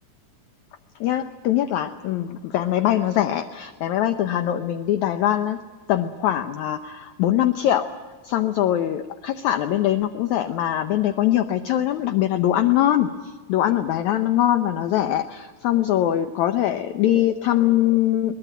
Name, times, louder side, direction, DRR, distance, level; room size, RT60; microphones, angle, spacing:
voice 1, 1.0-5.6 5.9-7.9 8.2-18.3, left 12 dB, 70° left, 9 dB, 1.9 m, -22 dB
22.5 x 20.0 x 9.1 m, 1.5 s
omnidirectional pair, 4.1 m